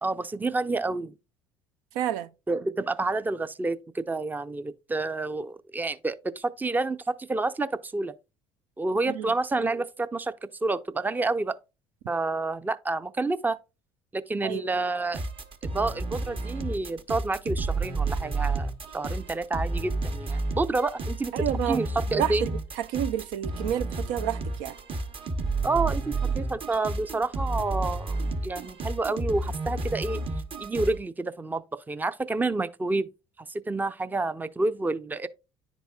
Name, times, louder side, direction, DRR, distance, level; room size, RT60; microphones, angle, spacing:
voice 1, 0.0-1.2 2.5-8.1 8.8-10.3 10.6-11.6 12.1-13.6 14.1-15.2 15.6-21.3 21.7-22.5 25.6-30.2 30.6-33.1 33.5-35.3, right 3 dB, 15° right, 0.5 m, -29 dB
voice 2, 1.9-2.3 9.1-9.3 14.4-14.7 21.3-21.8 22.1-24.8, right 11 dB, 70° right, 0.4 m, -30 dB
sound 1, 15.1-31.0, right 3 dB, 40° right, 1.1 m, -31 dB
10.5 x 4.0 x 2.3 m
hypercardioid pair, 65°, 14 cm